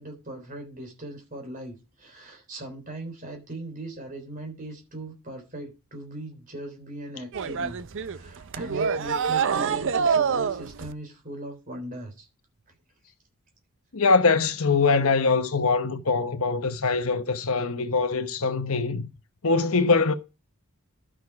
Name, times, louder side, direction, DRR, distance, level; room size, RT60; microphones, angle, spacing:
voice 1, 0.0-7.8 8.1-12.3, right 1 dB, 40° right, 3.6 m, -39 dB
sound 1, 7.3-10.9, right 6 dB, 60° right, 0.6 m, -26 dB
voice 2, 13.9-19.0 19.4-20.1, left 4 dB, 70° left, 1.0 m, -23 dB
12.0 x 6.3 x 4.8 m
head